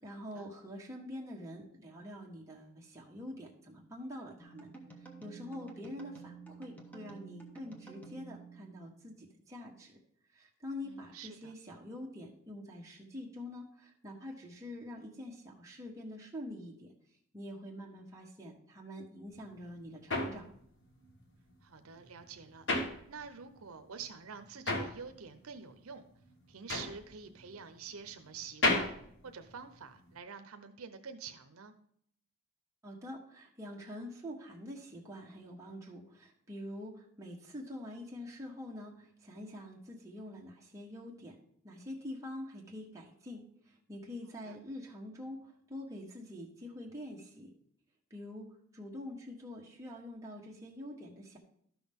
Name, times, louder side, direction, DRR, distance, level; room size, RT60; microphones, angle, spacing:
voice 1, 0.0-4.7 5.2-10.0 10.3-16.9 17.3-20.5 32.8-41.4 41.6-47.5 48.1-48.5 48.7-51.4, left 1 dB, 15° right, -3 dB, 1.4 m, -46 dB
sound 1, 4.4-9.2, right 4 dB, 5° left, 1.1 m, -51 dB
voice 2, 10.8-11.5 21.6-22.6 23.1-26.0 26.5-29.0 29.2-31.7 44.4-44.6, right 6 dB, 75° right, 8 dB, 0.7 m, -47 dB
sound 2, 19.3-23.6 23.9-30.1, left 2 dB, 55° left, 1.4 m, -35 dB
12.5 x 6.1 x 3.6 m, 0.67 s
head